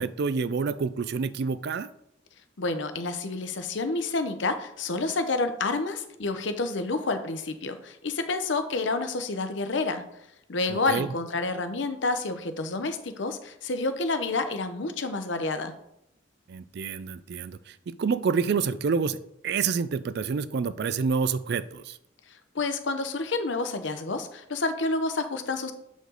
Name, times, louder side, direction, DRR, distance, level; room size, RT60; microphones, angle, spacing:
voice 1, 0.0-1.9 10.9-11.1 16.5-17.6 17.9-19.2 19.4-22.0, right 5 dB, 55° right, 14 dB, 0.4 m, -28 dB
voice 2, 2.6-10.0 10.5-15.7 22.3-25.7, left 3 dB, 65° left, 8 dB, 0.8 m, -29 dB
7.9 x 5.1 x 3.9 m, 0.79 s
head